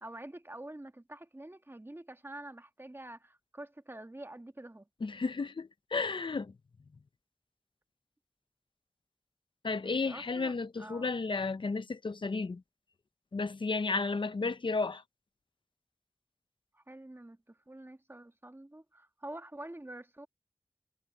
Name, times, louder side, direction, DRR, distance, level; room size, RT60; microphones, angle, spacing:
voice 1, 0.0-4.9 9.8-11.1 16.7-20.3, right 1 dB, 25° right, 1.5 m, -47 dB
voice 2, 5.0-6.5 9.6-12.6 13.3-15.0, left 4 dB, 75° left, 0.7 m, -33 dB
wide cardioid pair, 50°, 9 cm